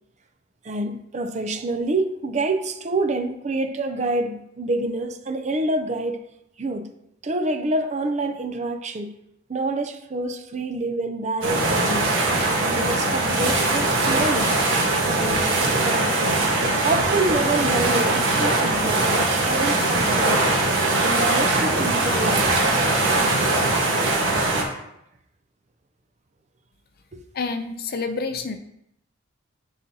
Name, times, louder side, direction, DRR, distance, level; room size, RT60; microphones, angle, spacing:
voice 1, 0.6-6.2 6.6-6.9 7.2-9.1 9.5-12.1 12.6-14.5 15.1-16.2 16.8-20.5 20.9-22.8 27.1-27.2, right 2 dB, 35° right, 7 dB, 0.5 m, -27 dB
sound 1, 11.4-24.6, right 2 dB, 70° right, 1.3 m, -21 dB
voice 2, 27.3-28.6, left 4 dB, 50° left, 7 dB, 0.5 m, -28 dB
10.5 x 3.9 x 2.8 m, 0.81 s
head